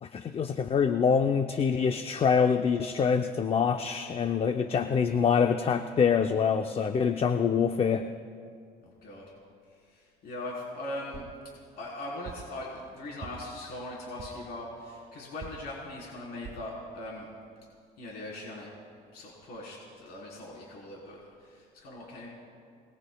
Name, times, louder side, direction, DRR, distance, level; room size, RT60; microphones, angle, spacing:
voice 1, 0.0-8.1, left 6 dB, 35° left, 7 dB, 0.6 m, -25 dB
voice 2, 8.8-9.2 9.8-11.2 11.8-17.3 18.0-18.7 19.1-22.3, left 1 dB, 70° left, -4 dB, 3.9 m, -40 dB
sound 1, 11.1-11.4 12.3-12.6 13.2-13.6 14.2-14.5 15.4-15.8 16.5-16.7 17.3-17.4 17.7-17.8, right 6 dB, 50° right, 1.7 m, -45 dB
27.5 x 20.0 x 2.3 m, 2.2 s
cardioid pair, 110°, 17 cm